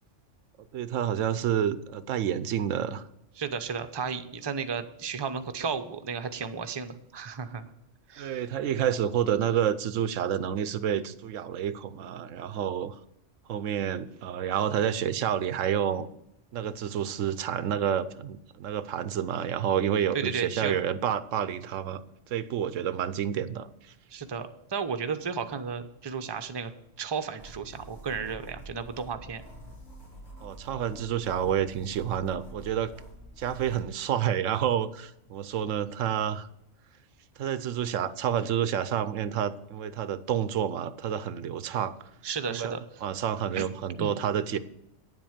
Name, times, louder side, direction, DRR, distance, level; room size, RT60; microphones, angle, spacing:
voice 1, 0.7-3.0 8.2-12.9 13.5-16.1 16.5-22.0 22.3-23.7 30.4-32.9 33.4-36.5 37.4-42.0 42.5-42.7 43.0-44.6, right 9 dB, 90° right, 14 dB, 1.0 m, -29 dB
voice 2, 3.4-7.7 8.1-8.4 20.1-20.8 24.1-26.7 27.0-29.4 42.2-42.8 43.6-43.7 44.0-44.1, right 6 dB, 25° right, 8 dB, 0.6 m, -33 dB
sound 1, 27.4-33.8, right 1 dB, 90° left, 4.6 m, -47 dB
9.8 x 7.8 x 7.2 m, 0.81 s
omnidirectional pair, 1.3 m